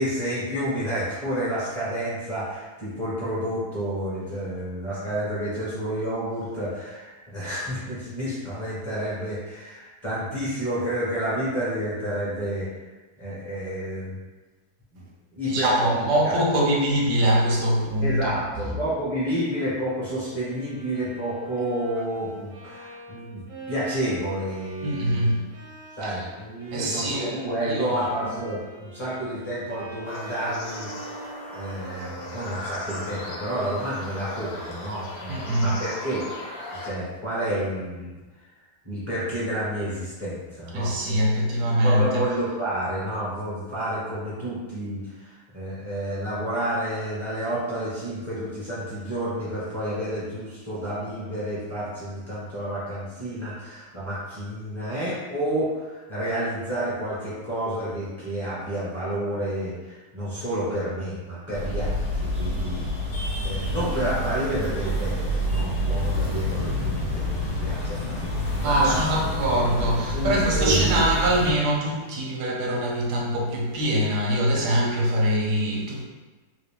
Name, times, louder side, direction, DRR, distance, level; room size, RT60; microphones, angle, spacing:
voice 1, 0.0-12.7 13.2-14.2 15.3-16.4 18.0-23.4 23.7-25.3 26.0-36.2 36.8-38.1 38.8-41.5 41.8-62.9 63.4-69.0 70.1-71.1, right 1 dB, 20° left, -11 dB, 0.9 m, -30 dB
voice 2, 15.4-18.3 24.8-25.4 26.0-26.2 26.7-27.4 27.6-28.3 35.3-35.8 40.7-42.2 62.6-62.7 68.6-76.1, right 1 dB, 85° right, -2 dB, 1.3 m, -23 dB
Bowed string instrument, 20.4-36.5, right 2 dB, 70° right, 0.9 m, -46 dB
sound 1, 30.0-36.9, left 2 dB, 85° left, 1.2 m, -37 dB
sound 2, 61.5-71.5, equal, 50° left, 1.1 m, -27 dB
3.2 x 2.5 x 3.4 m, 1.3 s
omnidirectional pair, 1.7 m